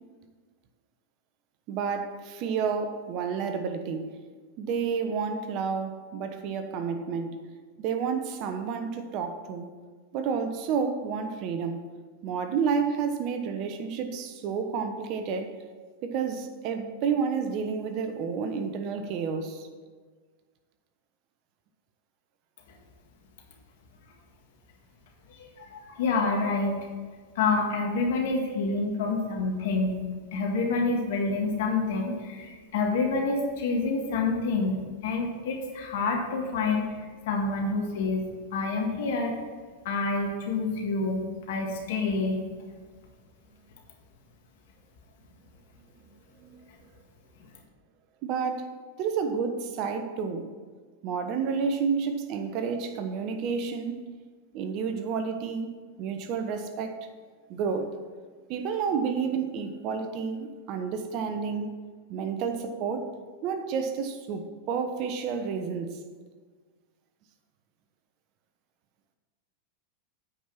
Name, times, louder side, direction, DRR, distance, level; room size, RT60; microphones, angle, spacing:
voice 1, 1.7-4.1 4.6-7.4 7.8-9.7 10.1-11.8 12.2-15.6 16.0-19.7 46.4-46.6 48.2-48.7 49.0-50.5 51.0-54.0 54.5-55.7 56.0-57.0 57.5-57.9 58.5-61.7 62.1-63.1 63.4-65.9, right 6 dB, 50° right, 7 dB, 1.0 m, -30 dB
voice 2, 25.4-26.8 27.4-30.0 30.3-34.8 35.0-36.9 37.2-39.4 39.9-41.2 41.5-42.4, left 3 dB, 65° left, 1 dB, 1.8 m, -27 dB
8.5 x 5.4 x 5.8 m, 1.5 s
hypercardioid pair, 105°, 0 cm